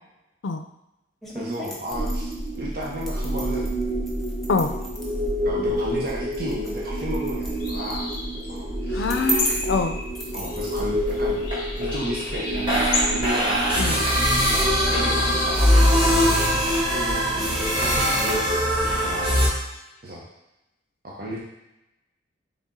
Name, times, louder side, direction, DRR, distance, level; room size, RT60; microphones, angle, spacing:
sound 1, 1.2-10.8, right 1 dB, ahead, 0.5 m, -36 dB
voice 1, 1.3-3.8 4.5-4.9 5.4-8.1 8.4-9.0 10.3-11.4 11.8-13.7 14.9-16.5 16.7-19.4 20.0-20.2 21.0-21.4, equal, 50° right, -4 dB, 0.8 m, -34 dB
sound 2, 1.9-19.5, equal, 25° right, 1.4 m, -24 dB
sound 3, 7.5-16.4, left 2 dB, 50° left, 0.7 m, -32 dB
voice 2, 8.9-10.0 13.8-14.0, left 4 dB, 85° left, 8 dB, 0.4 m, -24 dB
4.1 x 3.5 x 3.7 m, 0.92 s
head